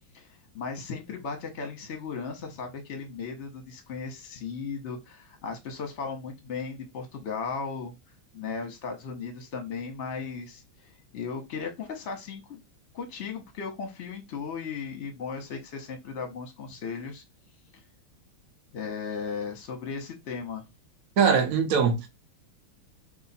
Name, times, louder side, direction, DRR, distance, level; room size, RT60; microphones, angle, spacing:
voice 1, 0.5-8.0 8.3-12.6 12.9-17.2 18.7-20.6, left 5 dB, 45° left, 0.9 m, -36 dB
voice 2, 21.2-22.1, right 6 dB, 85° right, 0.7 m, -22 dB
3.1 x 2.7 x 4.1 m
omnidirectional pair, 2.3 m